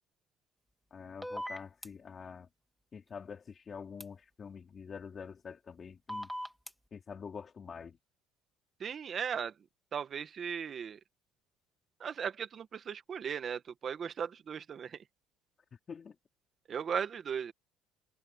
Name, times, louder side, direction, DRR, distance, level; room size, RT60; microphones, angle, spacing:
voice 1, 0.9-2.5 2.9-6.3 6.9-8.0 15.9-16.2, left 6 dB, 25° left, 3.5 m, -46 dB
sound 1, 1.2-1.9 4.0-4.1 6.1-6.7, equal, ahead, 2.1 m, -39 dB
voice 2, 8.8-9.5 9.9-11.0 12.0-15.0 16.7-17.5, right 7 dB, 30° right, 1.2 m, -37 dB
cardioid pair, 160°, 0 cm